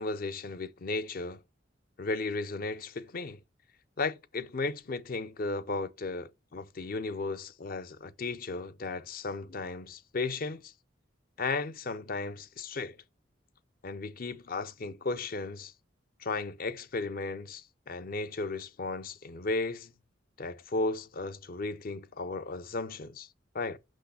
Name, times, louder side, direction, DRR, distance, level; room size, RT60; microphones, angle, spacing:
voice 1, 0.0-1.4 2.0-3.4 4.0-10.7 11.4-13.0 13.8-15.7 16.2-19.9 20.4-23.3 23.5-23.8, left 3 dB, 50° left, 0.6 m, -35 dB
6.3 x 6.0 x 5.6 m
head